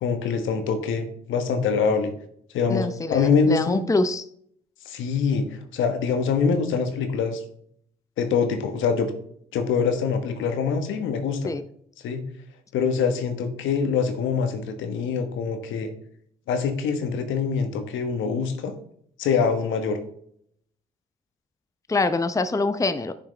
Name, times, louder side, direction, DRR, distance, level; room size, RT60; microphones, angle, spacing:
voice 1, 0.0-2.1 2.5-3.8 4.8-5.4 5.7-7.4 8.2-9.1 9.5-11.5 12.0-12.2 12.7-15.9 16.5-18.7 19.2-20.0, left 5 dB, 70° left, 7 dB, 1.3 m, -24 dB
voice 2, 2.7-4.2 11.4-11.6 21.9-23.1, left 3 dB, 15° left, 11 dB, 0.7 m, -24 dB
10.5 x 6.1 x 3.3 m, 0.66 s
hypercardioid pair, 45°, 21 cm